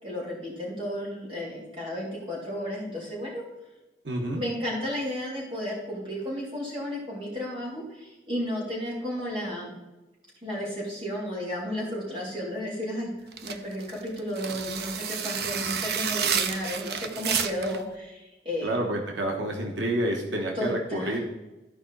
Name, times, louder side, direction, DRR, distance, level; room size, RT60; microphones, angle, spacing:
voice 1, 0.0-3.4 4.3-9.7 10.4-18.8 20.5-21.2, equal, 30° right, -5 dB, 3.3 m, -33 dB
voice 2, 4.0-4.4 18.6-21.2, right 1 dB, 90° right, 0 dB, 1.4 m, -29 dB
sound 1, 13.3-17.8, right 7 dB, 60° right, 0.6 m, -30 dB
13.5 x 5.0 x 4.1 m, 1.0 s
head